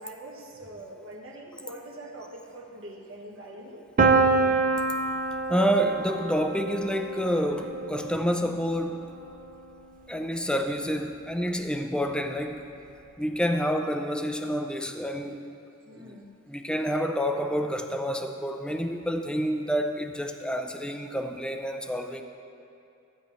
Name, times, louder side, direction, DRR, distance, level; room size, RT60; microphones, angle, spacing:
voice 1, 0.0-4.1 15.8-16.3, right 1 dB, 70° right, -2 dB, 1.5 m, -43 dB
Piano, 4.0-9.8, right 3 dB, 40° right, 0.6 m, -27 dB
voice 2, 5.5-9.1 10.1-12.6 13.2-15.4 15.9-16.1 16.5-22.2, equal, 5° left, 5 dB, 0.4 m, -28 dB
15.0 x 9.4 x 3.2 m, 2.6 s
head